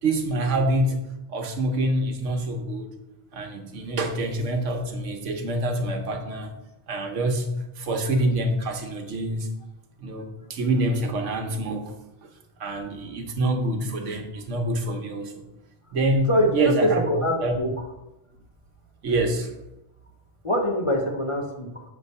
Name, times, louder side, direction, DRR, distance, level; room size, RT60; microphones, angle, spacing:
voice 1, 0.0-1.0 1.3-2.9 3.3-6.5 6.9-7.5 7.8-9.5 10.0-11.9 12.2-12.3 12.6-15.4 15.9-17.6 19.0-19.5, right 1 dB, 80° right, 4 dB, 1.2 m, -26 dB
voice 2, 16.3-17.7 20.4-21.8, equal, 35° left, 0 dB, 0.7 m, -24 dB
7.0 x 3.1 x 5.3 m, 0.92 s
omnidirectional pair, 1.2 m